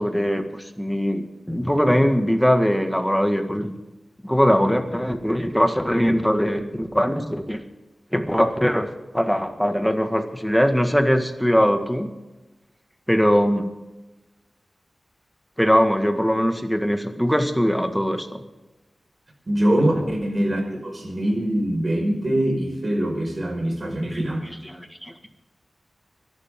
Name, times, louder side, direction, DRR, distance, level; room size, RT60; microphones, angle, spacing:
voice 1, 0.0-3.7 4.2-7.6 8.1-8.9 9.1-12.1 13.1-13.6 15.6-18.4 19.8-19.9 24.1-24.3 24.6-25.3, equal, 5° left, 5 dB, 1.8 m, -21 dB
voice 2, 19.5-24.5, right 1 dB, 40° right, 2 dB, 5.1 m, -23 dB
25.0 x 12.0 x 3.8 m, 1.1 s
wide cardioid pair, 100°, 0 cm